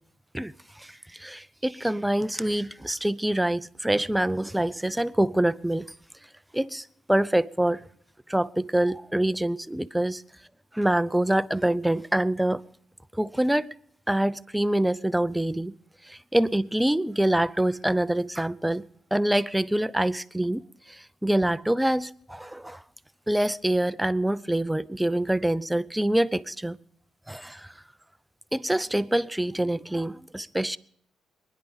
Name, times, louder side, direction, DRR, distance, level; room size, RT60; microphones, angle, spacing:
voice 1, 0.3-5.9 6.5-7.9 8.3-10.2 10.7-12.6 13.1-13.7 14.1-15.7 16.0-22.8 23.3-26.8 27.3-27.7 28.5-30.8, right 1 dB, 5° right, 0.5 m, -25 dB
23.5 x 10.5 x 5.2 m
cardioid pair, 90°, 0 cm